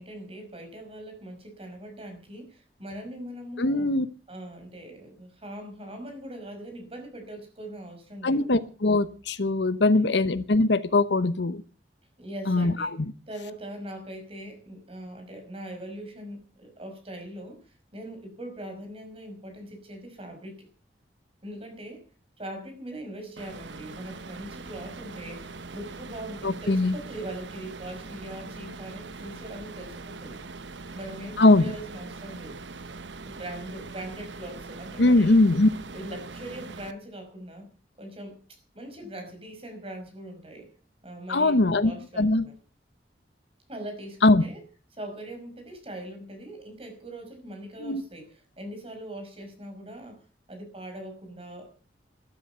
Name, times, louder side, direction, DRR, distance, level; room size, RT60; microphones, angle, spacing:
voice 1, 0.0-3.9 4.3-8.4 9.9-10.1 12.2-13.0 13.3-20.7 21.4-22.0 22.4-30.4 30.9-32.6 33.2-35.4 35.9-37.6 38.0-40.7 41.0-42.5 43.7-44.6 44.9-50.2 50.5-51.7, right 1 dB, 30° right, 6 dB, 5.5 m, -41 dB
voice 2, 3.6-4.1 8.2-11.6 12.5-13.1 26.4-26.9 31.4-31.7 35.0-35.7 41.3-42.4 44.2-44.4 47.8-48.0, left 2 dB, 75° left, 13 dB, 1.0 m, -21 dB
sound 1, 23.4-36.9, right 3 dB, 85° right, 1.0 m, -42 dB
13.0 x 13.0 x 6.8 m, 0.38 s
head